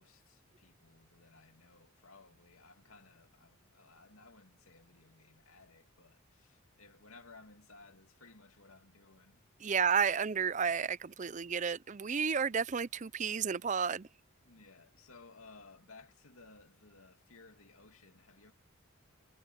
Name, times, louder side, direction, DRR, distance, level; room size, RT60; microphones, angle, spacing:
voice 1, 0.0-9.7 14.4-18.5, left 3 dB, 85° left, 2.6 m, -59 dB
voice 2, 9.6-14.1, right 6 dB, 35° right, 0.5 m, -32 dB
head